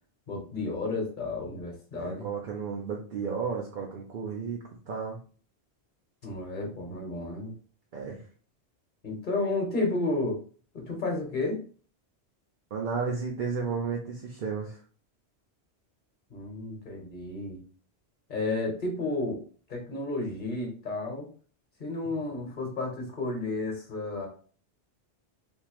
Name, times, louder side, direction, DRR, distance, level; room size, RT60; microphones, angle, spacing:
voice 1, 0.3-2.2 6.2-7.5 9.0-10.4 10.7-11.6 16.3-17.6 18.3-19.4 19.7-21.3 21.8-24.3, left 2 dB, 45° left, 1 dB, 1.2 m, -32 dB
voice 2, 2.0-5.2 7.9-8.2 12.7-14.8, right 5 dB, 55° right, 0 dB, 0.7 m, -33 dB
3.6 x 2.8 x 3.0 m, 0.41 s
omnidirectional pair, 1.1 m